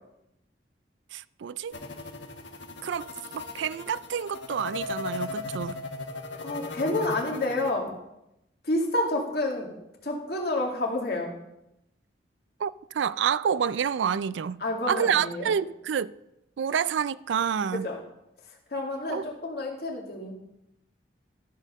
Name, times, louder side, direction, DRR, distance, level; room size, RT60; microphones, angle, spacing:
voice 1, 1.1-1.7 2.8-3.1 3.3-5.8 12.6-14.6 14.9-16.1 16.6-17.8 19.1-19.3, right 7 dB, 80° right, 0.4 m, -28 dB
sound 1, 1.7-7.7, left 3 dB, 80° left, 1.3 m, -37 dB
voice 2, 6.4-8.0 8.6-9.7 10.0-11.3 14.6-15.5 17.7-18.0 18.7-20.3, left 2 dB, 55° left, 2.3 m, -29 dB
13.5 x 5.5 x 6.4 m
head